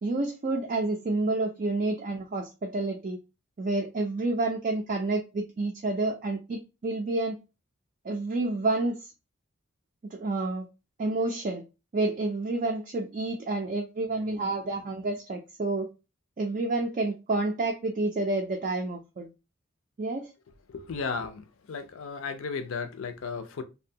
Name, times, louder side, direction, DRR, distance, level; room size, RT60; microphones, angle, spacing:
voice 1, 0.0-3.2 3.6-7.4 8.0-9.1 10.1-10.7 11.0-11.6 11.9-15.9 16.4-19.3 20.0-20.3, right 2 dB, 40° right, 0.3 m, -29 dB
voice 2, 20.7-23.6, left 5 dB, 75° left, 0.5 m, -35 dB
2.6 x 2.1 x 2.6 m
head